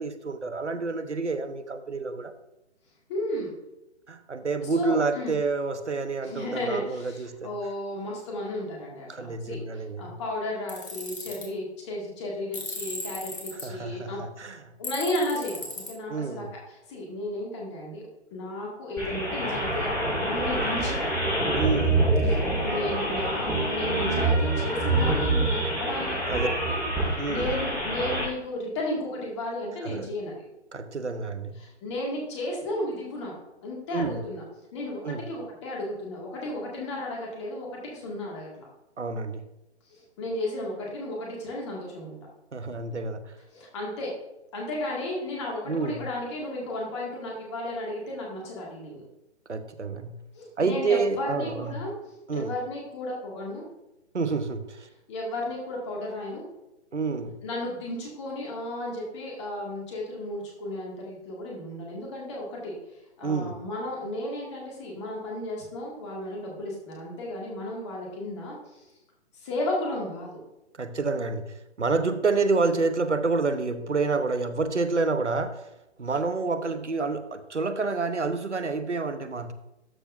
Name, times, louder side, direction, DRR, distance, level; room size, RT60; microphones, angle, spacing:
voice 1, 0.0-2.3 4.1-7.5 9.1-10.2 13.6-14.6 16.1-16.5 21.6-22.0 26.3-26.5 27.2-27.5 29.8-30.0 30.7-31.5 33.9-34.2 35.0-35.2 39.0-39.4 42.5-43.3 45.7-46.0 49.5-50.2 50.6-51.8 52.3-52.5 54.1-54.9 56.9-57.4 63.2-63.6 70.8-75.6 76.0-79.5, right 3 dB, 80° right, 11 dB, 0.9 m, -28 dB
voice 2, 3.1-3.5 4.6-5.3 6.2-14.2 14.8-18.0 18.3-21.3 22.2-30.4 31.6-33.3 33.6-34.4 34.7-38.7 39.9-42.2 43.5-44.1 44.5-49.0 50.3-53.6 55.1-56.5 57.4-62.8 63.2-68.9 69.3-70.4, left 1 dB, 25° left, -2 dB, 2.0 m, -34 dB
Tools, 10.7-11.5 12.5-13.6 14.8-15.9, left 2 dB, 50° left, 2.7 m, -36 dB
sound 1, 19.0-28.2, right 2 dB, 10° left, 3.0 m, -26 dB
12.5 x 6.4 x 2.6 m, 0.93 s
figure-of-eight pair, 135°, 35 cm